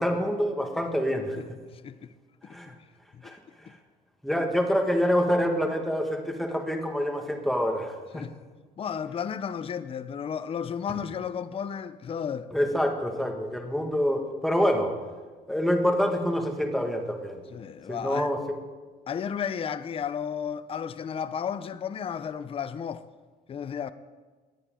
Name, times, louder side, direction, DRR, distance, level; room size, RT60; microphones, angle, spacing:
voice 1, 0.0-1.6 2.5-2.7 3.2-3.8 4.2-8.2 12.5-15.0 15.5-17.4 17.9-18.4, equal, ahead, 1.8 m, -26 dB
voice 2, 8.8-12.5 17.5-18.3 19.1-23.0 23.5-23.9, left 7 dB, 35° left, 0.6 m, -33 dB
18.5 x 10.0 x 3.8 m
cardioid pair, 110°, 17 cm